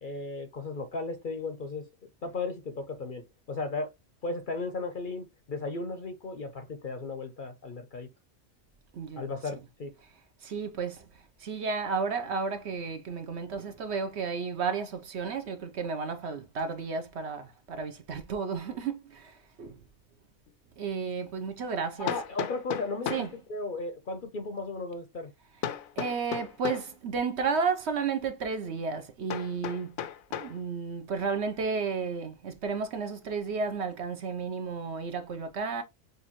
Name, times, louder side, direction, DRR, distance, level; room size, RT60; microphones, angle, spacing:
voice 1, 0.0-1.9 2.2-3.9 4.2-8.1 9.2-9.9 22.0-23.1 23.5-25.3, left 3 dB, 50° left, 0.7 m, -35 dB
voice 2, 8.9-9.6 10.4-11.1 11.4-19.8 20.8-22.1 23.1-23.4 26.0-30.0 30.3-35.8, right 5 dB, 60° right, 1.0 m, -32 dB
Hammer, 20.5-20.6 22.1-23.4 25.6-26.9 29.3-30.6, left 9 dB, 85° left, 1.1 m, -35 dB
6.4 x 2.6 x 3.0 m
omnidirectional pair, 1.4 m